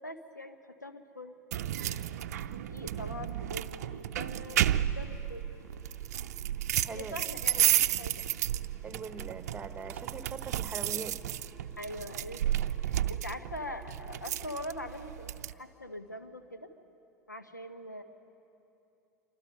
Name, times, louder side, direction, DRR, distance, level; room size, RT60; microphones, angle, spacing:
voice 1, 0.0-1.3 2.5-5.4 6.9-8.2 11.8-16.7 17.3-18.0, left 1 dB, 85° left, 7 dB, 1.2 m, -43 dB
sound 1, 1.5-15.5, right 11 dB, 60° right, 0.6 m, -32 dB
sound 2, 2.4-14.6, left 1 dB, 15° left, 4.7 m, -60 dB
voice 2, 6.8-7.2 8.8-11.2, right 5 dB, 15° right, 10 dB, 1.3 m, -42 dB
27.0 x 24.5 x 5.4 m, 2.9 s
figure-of-eight pair, 80°, 9 cm